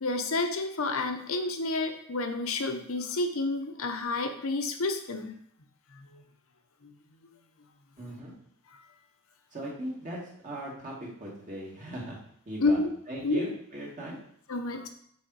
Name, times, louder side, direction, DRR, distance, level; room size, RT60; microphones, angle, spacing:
voice 1, 0.0-5.4 5.9-6.2 6.8-6.9 12.6-12.9 13.2-13.4 14.5-14.9, left 3 dB, 65° left, 6 dB, 0.8 m, -30 dB
voice 2, 8.0-8.3 9.5-12.2 12.5-12.8 13.1-14.2, right 1 dB, 35° right, -4 dB, 1.9 m, -38 dB
6.4 x 3.8 x 4.7 m, 0.67 s
head